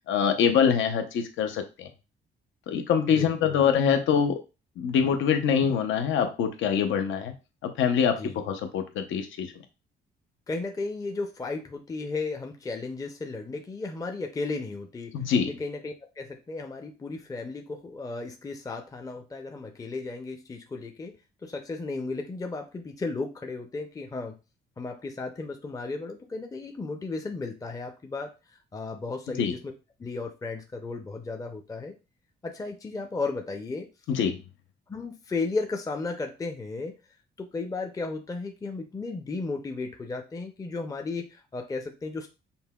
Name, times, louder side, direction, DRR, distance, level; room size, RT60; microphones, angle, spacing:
voice 1, 0.1-1.9 2.7-4.4 4.8-7.3 7.6-9.5 15.1-15.5 29.4-29.5 34.1-34.4, left 7 dB, 75° left, 6 dB, 0.6 m, -24 dB
voice 2, 3.1-3.6 8.0-8.4 10.5-15.1 15.5-21.1 21.4-24.4 24.8-28.3 28.7-29.7 30.0-31.9 32.4-33.9 34.9-36.9 37.4-42.3, left 3 dB, 15° left, 4 dB, 0.5 m, -34 dB
5.3 x 2.2 x 2.2 m, 0.30 s
cardioid pair, 90°, 20 cm